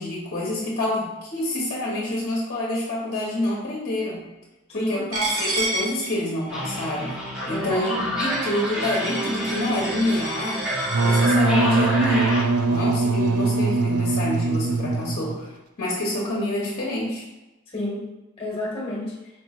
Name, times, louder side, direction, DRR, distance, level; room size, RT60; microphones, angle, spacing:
voice 1, 0.0-4.2 4.7-7.1 7.5-10.6 11.0-12.4 12.7-15.5 15.8-17.2, left 1 dB, 45° left, -5 dB, 0.9 m, -27 dB
voice 2, 4.7-5.1 7.5-8.1 17.7-19.2, left 1 dB, 25° left, -5 dB, 1.2 m, -30 dB
Coin (dropping), 5.1-11.3, right 2 dB, 65° right, 1.3 m, -31 dB
sound 1, 6.5-12.4, equal, 5° right, 0.9 m, -28 dB
Wind instrument woodwind instrument, 10.9-15.4, right 3 dB, 80° right, 0.4 m, -22 dB
4.5 x 3.0 x 2.4 m, 1.0 s
head